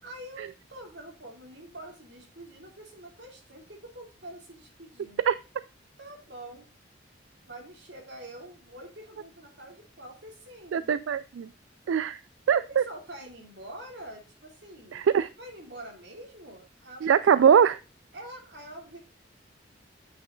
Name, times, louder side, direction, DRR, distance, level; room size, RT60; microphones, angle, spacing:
voice 1, 0.0-5.2 6.0-6.7 7.5-10.9 12.5-15.1 15.4-17.2 18.1-19.0, right 1 dB, 60° right, 1 dB, 2.7 m, -45 dB
voice 2, 10.7-11.5 11.9-12.2 12.5-12.8 14.9-15.3 17.0-17.8, right 7 dB, 80° right, 15 dB, 0.3 m, -22 dB
8.2 x 5.4 x 3.7 m, 0.31 s
head